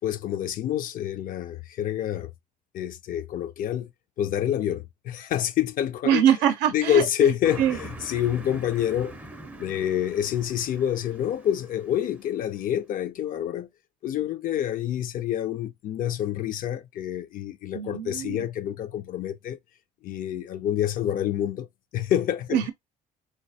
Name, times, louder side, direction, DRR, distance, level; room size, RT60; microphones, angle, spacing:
voice 1, 0.0-2.3 2.7-3.9 4.2-6.2 6.7-9.1 9.6-13.7 14.0-19.6 20.0-21.7 21.9-22.7, left 11 dB, 55° left, 0.4 m, -27 dB
voice 2, 6.1-7.3 7.6-7.8 17.7-18.5 22.5-22.7, right 10 dB, 90° right, 0.5 m, -23 dB
Car passing by, 7.4-12.4, right 2 dB, 10° right, 0.4 m, -43 dB
3.9 x 2.1 x 2.6 m
cardioid pair, 110°, 17 cm